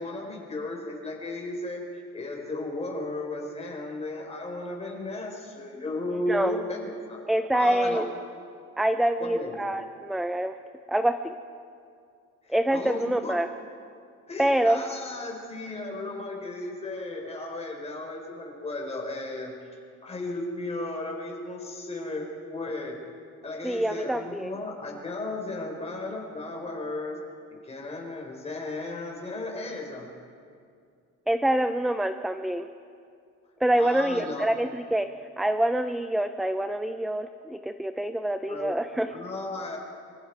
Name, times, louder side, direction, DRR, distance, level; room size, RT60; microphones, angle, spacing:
voice 1, 0.0-1.8 2.1-7.2 7.5-8.1 9.2-9.6 12.4-13.4 14.3-23.0 23.4-27.2 27.6-30.1 33.8-34.5 38.5-38.7 39.1-39.8, left 2 dB, 20° left, -1 dB, 4.6 m, -35 dB
voice 2, 7.3-8.1 8.8-10.6 10.9-11.3 12.5-13.5 14.4-14.8 23.6-24.5 31.3-32.7 33.6-35.1 35.4-39.1, right 1 dB, ahead, 8 dB, 0.5 m, -26 dB
26.5 x 25.5 x 4.8 m, 2.3 s
cardioid pair, 155°, 31 cm